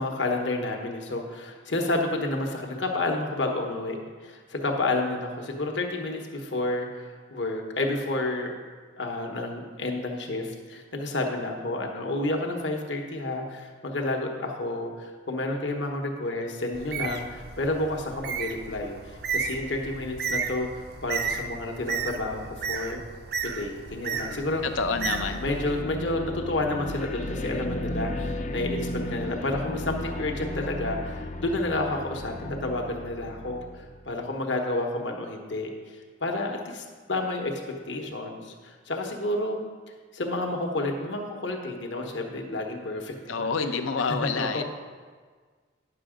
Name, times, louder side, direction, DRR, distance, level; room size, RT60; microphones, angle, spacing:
voice 1, 0.0-8.5 9.0-19.0 19.3-20.7 21.0-23.0 23.4-24.6 25.4-37.6 37.9-39.6 40.1-43.5 44.4-44.6, left 2 dB, 65° left, 2 dB, 1.1 m, -30 dB
Bird, 16.7-25.8, right 6 dB, 50° right, 0.5 m, -33 dB
sound 1, 24.1-34.3, left 1 dB, 35° left, 0.4 m, -35 dB
voice 2, 24.6-25.4 43.3-44.6, left 4 dB, 90° left, 7 dB, 0.7 m, -28 dB
10.0 x 6.7 x 5.0 m, 1.6 s
head